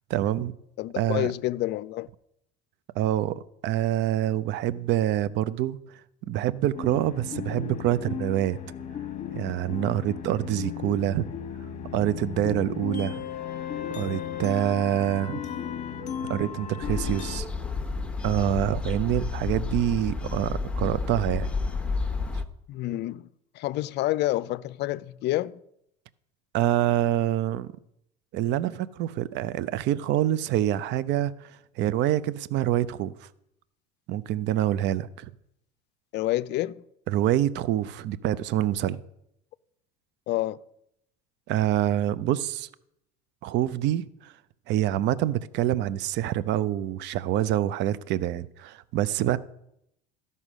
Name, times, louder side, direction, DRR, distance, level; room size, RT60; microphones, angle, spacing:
voice 1, 0.1-0.5 1.0-1.3 3.0-5.8 6.3-8.6 9.3-11.3 11.9-13.2 14.0-15.4 16.3-17.5 18.2-21.5 26.5-27.7 28.3-33.3 34.1-35.3 37.1-39.0 41.5-42.7 43.4-44.3 44.7-49.4, right 12 dB, 55° right, 0.5 m, -26 dB
voice 2, 0.8-2.1 22.7-23.3 23.6-25.6 36.1-36.8 40.3-40.6, left 16 dB, 55° left, 0.5 m, -28 dB
sound 1, 6.8-17.4, left 8 dB, 35° left, 1.0 m, -35 dB
sound 2, 16.8-22.4, left 4 dB, 5° left, 1.0 m, -30 dB
12.5 x 5.5 x 6.1 m
supercardioid pair, 95°, 21 cm